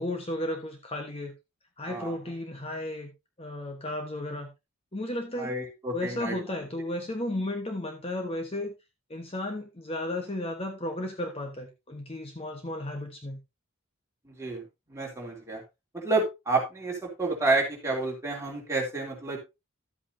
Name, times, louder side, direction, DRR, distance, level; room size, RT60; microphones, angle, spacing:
voice 1, 0.0-1.3 1.8-3.1 3.4-4.5 4.9-5.5 5.9-8.7 9.1-13.4, left 1 dB, 30° left, 4 dB, 1.2 m, -34 dB
voice 2, 5.4-6.3 14.3-14.6 14.9-15.6 15.9-19.4, right 3 dB, 15° right, -1 dB, 3.1 m, -29 dB
12.5 x 8.4 x 2.7 m, 0.23 s
head